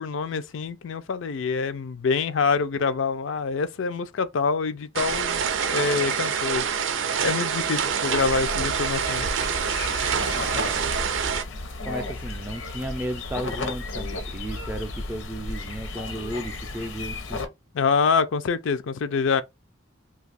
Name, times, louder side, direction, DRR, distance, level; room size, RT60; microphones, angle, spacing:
voice 1, 0.0-5.4 5.7-6.6 7.2-9.3 17.7-19.4, left 5 dB, 70° left, 0.4 m, -25 dB
sound 1, 5.0-11.4, right 7 dB, 70° right, 0.5 m, -26 dB
sound 2, 7.5-17.5, left 3 dB, 90° left, 0.8 m, -34 dB
voice 2, 10.4-10.9 11.8-17.4, right 1 dB, 10° right, 0.4 m, -34 dB
2.6 x 2.3 x 4.0 m
head